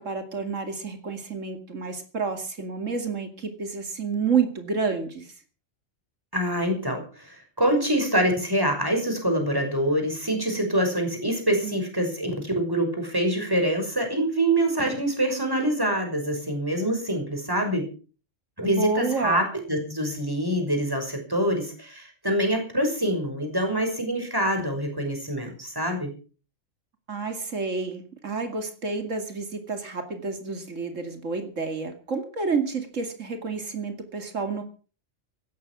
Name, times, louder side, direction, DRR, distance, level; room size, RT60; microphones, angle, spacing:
voice 1, 0.0-5.3 11.6-11.8 18.8-19.5 27.1-34.6, right 4 dB, 90° right, 7 dB, 2.8 m, -29 dB
voice 2, 6.3-17.9 18.6-26.1, right 1 dB, 15° right, 4 dB, 6.0 m, -25 dB
16.0 x 13.0 x 6.2 m, 0.38 s
omnidirectional pair, 1.3 m